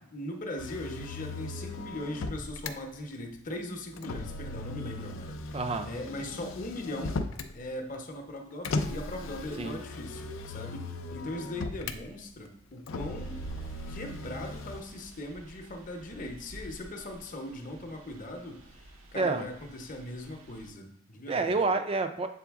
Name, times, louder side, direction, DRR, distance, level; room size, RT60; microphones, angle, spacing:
voice 1, 0.1-5.4 5.8-7.2 7.5-13.4 13.9-21.7, left 1 dB, 40° left, 2 dB, 0.8 m, -39 dB
Motor vehicle (road), 0.6-2.7 4.0-7.6 8.6-12.0 12.9-14.8, left 2 dB, 70° left, 0.4 m, -37 dB
voice 2, 5.5-5.9 9.6-9.8 19.1-19.5 21.3-22.3, right 3 dB, 25° right, 8 dB, 0.3 m, -28 dB
sound 1, 13.2-20.7, right 1 dB, 80° right, 0.7 m, -49 dB
7.0 x 3.8 x 3.5 m, 0.76 s
head